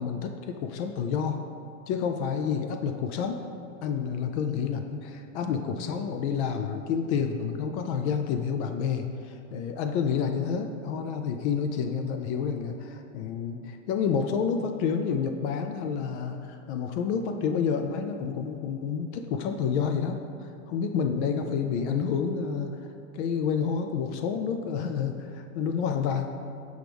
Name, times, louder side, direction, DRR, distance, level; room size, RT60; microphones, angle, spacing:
voice 1, 0.0-1.4 1.9-3.4 3.8-20.2 20.4-22.8 23.1-26.3, left 6 dB, 50° left, 6 dB, 0.5 m, -29 dB
5.9 x 4.7 x 3.4 m, 2.6 s
hypercardioid pair, 120°, 43 cm